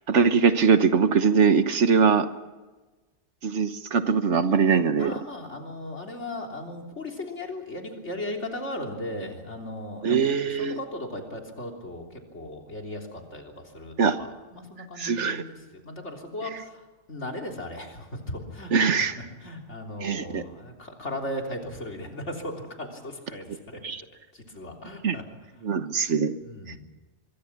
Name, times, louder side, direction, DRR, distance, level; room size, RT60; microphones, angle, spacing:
voice 1, 0.1-2.3 3.4-5.1 10.0-10.8 14.0-14.2 15.0-15.4 18.7-19.1 20.0-20.4 23.8-24.0 25.0-25.2 25.6-26.4, right 5 dB, 80° right, 10 dB, 1.5 m, -22 dB
voice 2, 5.0-12.1 12.3-16.8 17.1-18.7 19.0-19.1 19.4-23.8 24.3-25.2 26.4-26.9, left 1 dB, 75° left, 1 dB, 3.8 m, -37 dB
25.0 x 23.0 x 6.0 m, 1.2 s
omnidirectional pair, 1.2 m